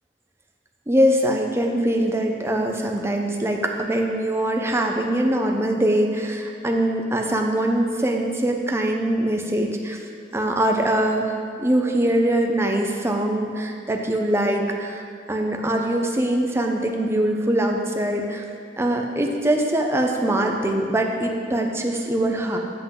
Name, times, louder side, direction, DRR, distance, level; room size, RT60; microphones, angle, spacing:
voice 1, 0.9-10.0 10.3-11.3 11.6-15.0 15.3-18.4 18.8-22.6, right 1 dB, 15° right, 2 dB, 0.7 m, -22 dB
7.9 x 7.8 x 3.8 m, 2.4 s
head